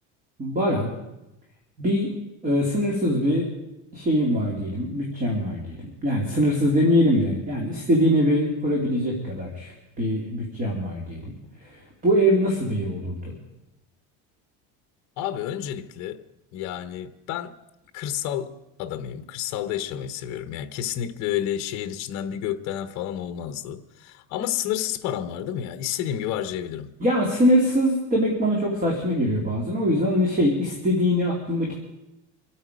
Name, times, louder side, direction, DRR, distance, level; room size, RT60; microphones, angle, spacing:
voice 1, 0.4-0.9 1.8-2.1 2.4-3.5 3.9-9.7 10.0-13.3 27.0-31.7, equal, 20° right, 2.5 m, -23 dB
voice 2, 15.2-16.2 16.5-17.6 17.9-26.9, left 11 dB, 45° left, 1.0 m, -30 dB
26.0 x 8.9 x 5.1 m
cardioid pair, 165°, 37 cm